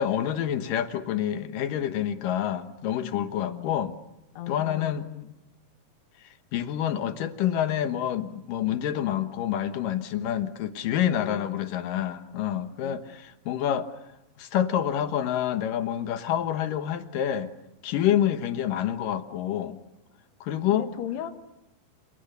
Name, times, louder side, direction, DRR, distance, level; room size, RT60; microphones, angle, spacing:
voice 1, 0.0-4.0 4.5-5.1 6.5-13.9 14.4-17.5 17.8-19.8 20.4-20.9, left 10 dB, 65° left, 10 dB, 2.5 m, -27 dB
voice 2, 3.0-3.8 4.4-5.4 11.0-11.7 12.8-13.2 20.7-21.3, left 11 dB, 85° left, 8 dB, 3.5 m, -38 dB
29.0 x 27.5 x 6.9 m, 0.89 s
omnidirectional pair, 4.7 m